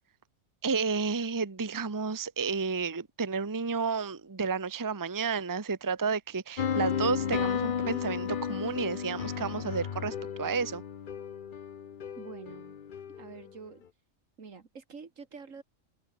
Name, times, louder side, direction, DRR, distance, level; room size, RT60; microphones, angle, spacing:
voice 1, 0.6-10.8, right 5 dB, 20° right, 0.8 m, -31 dB
sound 1, 6.6-13.5, left 8 dB, 45° left, 0.8 m, -34 dB
voice 2, 12.2-12.8 13.2-13.8 14.4-15.6, right 5 dB, 75° right, 2.4 m, -46 dB
open air
omnidirectional pair, 1.4 m